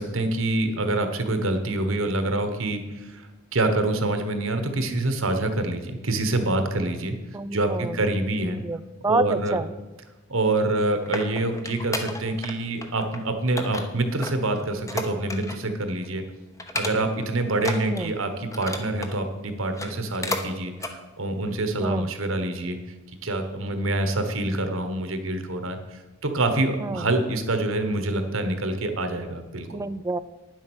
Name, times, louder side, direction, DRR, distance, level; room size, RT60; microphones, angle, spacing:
voice 1, 0.0-7.2 7.5-8.6 9.0-9.6 10.3-16.2 16.7-22.8 23.2-29.8, right 2 dB, 70° right, 7 dB, 1.3 m, -26 dB
voice 2, 7.3-8.0 8.6-9.7 17.8-18.1 21.8-22.1 26.8-27.1 29.7-30.2, right 3 dB, 15° right, 14 dB, 0.3 m, -28 dB
sound 1, 10.6-12.5 12.8-13.2 13.6-15.7 16.0-16.2 16.6-17.2 17.6-19.2 19.6-20.5 20.8-21.0 21.5-21.6, left 2 dB, 15° left, 0.8 m, -33 dB
9.9 x 7.6 x 6.3 m, 1.1 s
head